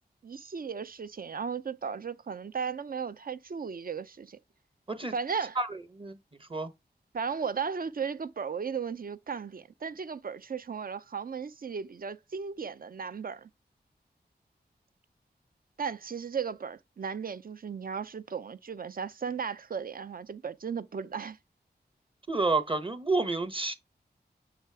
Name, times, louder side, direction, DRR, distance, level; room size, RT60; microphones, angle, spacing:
voice 1, 0.2-4.4 5.1-5.6 7.1-13.5 15.8-21.4, right 6 dB, 55° right, 0.6 m, -35 dB
voice 2, 5.6-6.2 6.5-6.7 22.3-23.7, right 3 dB, 30° right, 1.1 m, -29 dB
7.2 x 3.4 x 4.6 m
wide cardioid pair, 75°, 17 cm